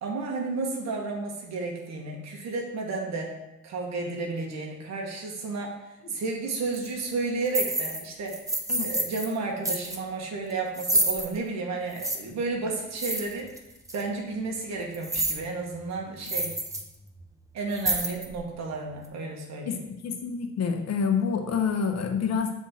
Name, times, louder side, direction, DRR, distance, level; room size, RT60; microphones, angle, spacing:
voice 1, 0.0-3.3 3.6-5.7 6.1-8.4 8.8-13.5 13.9-16.6 17.5-19.8, right 3 dB, 65° right, 0 dB, 1.3 m, -32 dB
sound 1, 6.7-6.9 7.5-8.0 8.3-9.3 9.6-10.0 10.7-11.3 12.0-12.2 13.0-13.6 13.9-14.0 14.9-15.4 15.8-15.9 16.2-16.8 17.1-17.3 17.7-18.4, right 1 dB, 10° right, 0.8 m, -28 dB
voice 2, 20.0-22.5, left 6 dB, 60° left, 4 dB, 1.1 m, -27 dB
7.3 x 3.6 x 4.3 m, 0.91 s
cardioid pair, 90°, 30 cm